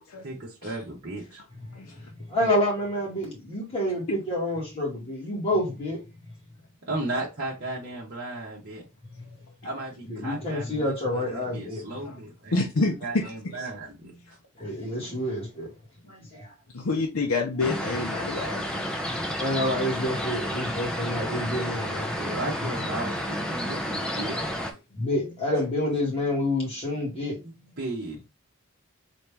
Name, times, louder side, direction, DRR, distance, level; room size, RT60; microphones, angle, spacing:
voice 1, 0.2-1.4 6.9-8.8 9.6-12.7 13.0-14.1 22.2-24.4 27.4-28.3, right 2 dB, 45° right, 1.1 m, -35 dB
voice 2, 2.3-6.0 9.2-9.4 10.1-11.8 14.0-14.1 14.6-15.7 16.0-16.5 19.4-22.2 24.9-27.4, left 1 dB, 25° left, 2.1 m, -28 dB
voice 3, 12.5-13.7 14.6-14.7 16.7-18.8, left 3 dB, 70° left, 0.7 m, -28 dB
sound 1, 17.6-24.7, equal, 5° left, 0.6 m, -31 dB
4.2 x 3.0 x 3.4 m
head